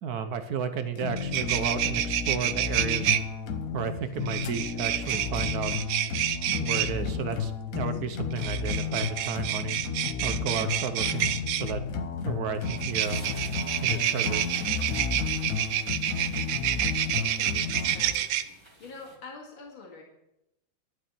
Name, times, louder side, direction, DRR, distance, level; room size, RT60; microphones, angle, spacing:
voice 1, 0.0-3.1 3.7-5.7 6.6-9.8 10.2-11.8 12.2-13.3 13.8-14.5, right 6 dB, 60° right, 9 dB, 1.1 m, -33 dB
sound 1, 0.8-0.9 1.1-3.2 4.3-6.9 8.3-11.7 12.6-18.4, right 12 dB, 80° right, 1.4 m, -28 dB
sound 2, 1.0-18.2, left 6 dB, 55° left, 1.1 m, -33 dB
sound 3, 12.9-19.2, right 1 dB, 15° right, 2.0 m, -51 dB
voice 2, 17.1-18.3 18.8-20.0, left 4 dB, 75° left, -2 dB, 3.0 m, -45 dB
11.5 x 5.9 x 8.4 m, 0.86 s
omnidirectional pair, 2.2 m